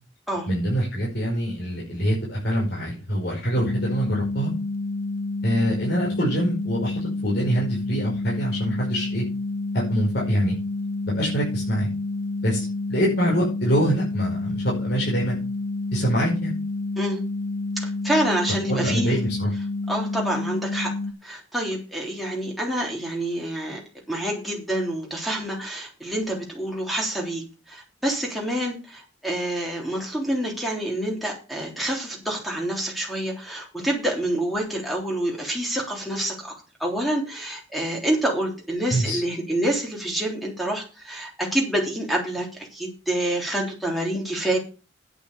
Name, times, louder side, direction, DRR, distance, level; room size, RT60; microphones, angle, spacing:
voice 1, 0.5-4.5 5.4-9.2 9.7-10.6 11.1-11.9 12.4-15.4 15.9-16.5 18.7-19.5 38.9-39.2, right 1 dB, 55° left, -4 dB, 5.4 m, -25 dB
sound 1, 3.6-21.1, left 2 dB, 85° left, 1.4 m, -29 dB
voice 2, 17.8-19.2 19.9-20.9 21.2-23.8 24.1-36.5 36.8-44.6, right 1 dB, ahead, -2 dB, 3.4 m, -27 dB
9.9 x 6.9 x 6.8 m, 0.32 s
head